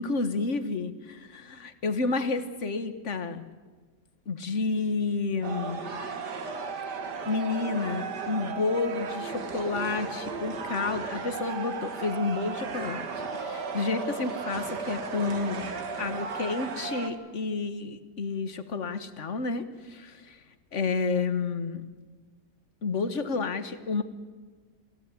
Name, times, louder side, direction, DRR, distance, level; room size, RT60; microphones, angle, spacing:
voice 1, 0.0-3.4 4.3-5.8 7.2-15.7 16.0-20.4 20.7-21.8 22.8-24.0, left 4 dB, 45° left, 11 dB, 1.7 m, -30 dB
sound 1, 5.4-17.1, right 5 dB, 85° right, 2.4 m, -35 dB
25.5 x 15.5 x 9.6 m, 1.4 s
omnidirectional pair, 1.8 m